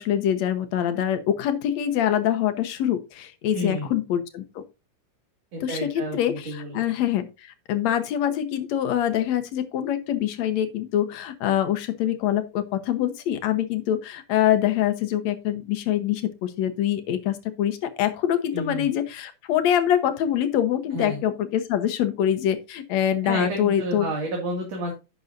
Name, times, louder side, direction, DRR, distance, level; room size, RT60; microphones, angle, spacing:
voice 1, 0.0-4.6 5.6-24.1, left 10 dB, 70° left, 9 dB, 2.1 m, -25 dB
voice 2, 3.5-3.9 5.5-6.8 18.5-18.9 20.9-21.2 23.2-24.9, right 1 dB, 55° right, 0 dB, 3.3 m, -30 dB
11.0 x 7.8 x 2.6 m, 0.27 s
omnidirectional pair, 3.6 m